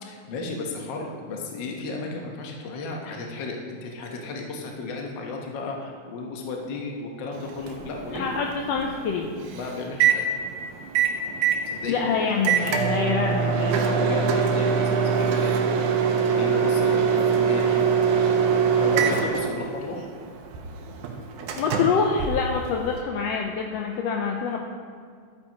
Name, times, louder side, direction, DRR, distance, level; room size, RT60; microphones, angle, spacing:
voice 1, 0.0-8.3 9.5-10.2 11.6-12.3 13.4-15.5 16.3-17.8 18.7-20.1, left 3 dB, 60° left, 1 dB, 1.2 m, -34 dB
Microwave oven, 7.3-23.0, right 6 dB, 85° right, 2.2 m, -24 dB
voice 2, 8.1-9.3 11.8-13.7 21.6-24.6, left 5 dB, 85° left, 2 dB, 1.5 m, -26 dB
12.0 x 8.7 x 2.9 m, 2.1 s
omnidirectional pair, 3.5 m